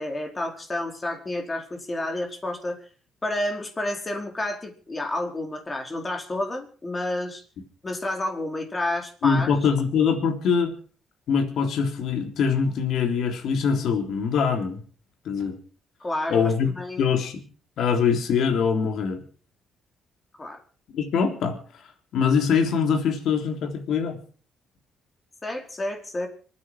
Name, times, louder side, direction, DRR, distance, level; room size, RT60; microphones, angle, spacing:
voice 1, 0.0-2.8 3.2-7.4 7.8-9.5 16.0-17.1 20.4-20.6 25.4-26.3, left 1 dB, 25° left, 3 dB, 4.5 m, -30 dB
voice 2, 9.2-10.7 11.3-14.8 15.3-15.6 16.3-16.7 17.0-17.4 17.8-19.2 20.9-21.6 22.1-24.2, left 6 dB, 75° left, 4 dB, 3.6 m, -23 dB
26.0 x 9.8 x 4.8 m, 0.40 s
cardioid pair, 90°, 0 cm